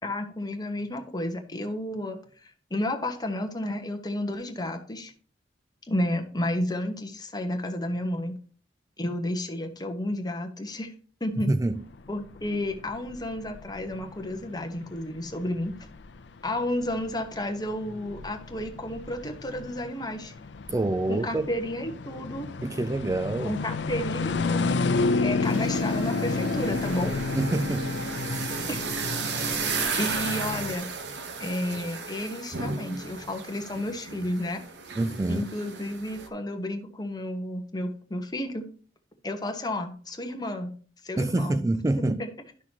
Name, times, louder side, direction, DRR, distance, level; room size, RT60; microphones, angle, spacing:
voice 1, 0.0-5.1 5.9-8.4 9.0-10.9 11.2-11.5 12.1-15.7 16.4-20.3 21.1-22.5 23.4-24.8 25.2-27.1 28.7-28.8 29.9-30.9 31.4-34.6 35.3-38.6 39.2-40.7 41.0-41.7 42.0-42.3, left 1 dB, 25° left, 1.1 m, -32 dB
voice 2, 11.4-11.8 20.7-21.5 22.6-23.6 27.4-27.9 28.2-28.5 35.0-35.5 41.2-42.2, right 2 dB, 20° right, 0.3 m, -26 dB
sound 1, 11.8-30.8, left 3 dB, 75° left, 0.5 m, -31 dB
sound 2, 24.3-28.5, right 1 dB, 40° right, 4.2 m, -38 dB
sound 3, 25.4-36.3, right 5 dB, 70° right, 1.1 m, -34 dB
11.5 x 6.1 x 2.9 m
head